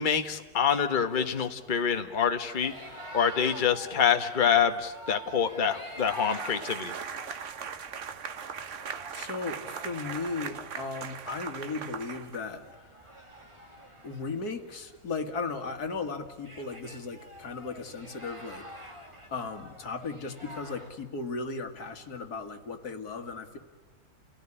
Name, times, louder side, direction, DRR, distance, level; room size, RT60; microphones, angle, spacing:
voice 1, 0.0-2.7 3.1-6.9, left 7 dB, 35° left, 7 dB, 1.4 m, -26 dB
sound 1, 2.6-20.9, right 1 dB, 20° right, 2.5 m, -48 dB
sound 2, 5.9-12.7, right 7 dB, 55° right, 1.3 m, -39 dB
voice 2, 9.1-12.6 14.0-18.9 19.3-23.6, left 4 dB, 85° left, 7 dB, 2.3 m, -36 dB
30.0 x 17.0 x 9.9 m, 1.4 s
omnidirectional pair, 1.6 m